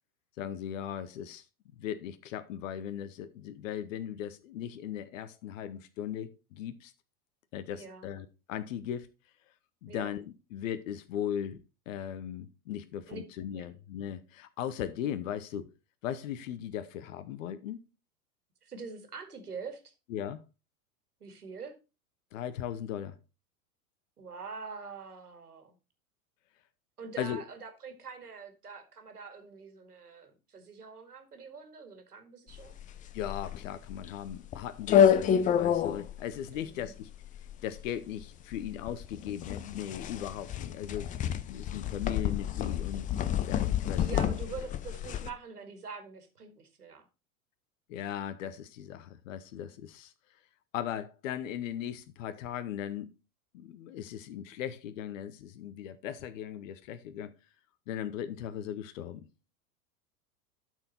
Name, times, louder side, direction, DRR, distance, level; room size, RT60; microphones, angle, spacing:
voice 1, 0.4-1.5 1.8-6.9 7.5-9.1 9.8-11.6 11.9-15.7 16.0-17.8 20.1-20.4 22.3-23.2 27.2-27.4 33.1-37.1 37.6-41.1 41.5-43.1 43.4-44.1 47.9-50.1 50.7-53.1 53.5-57.3 57.9-59.3, left 10 dB, 60° left, 0.8 m, -38 dB
voice 2, 7.7-8.1 9.9-10.1 13.1-13.2 13.5-13.8 18.6-19.9 21.2-21.7 24.2-25.8 27.0-32.8 36.5-36.9 44.0-47.1, right 5 dB, 85° right, 2.0 m, -45 dB
sound 1, 32.5-45.3, left 9 dB, 20° left, 0.5 m, -29 dB
12.0 x 4.6 x 4.2 m
figure-of-eight pair, 90°, 45 cm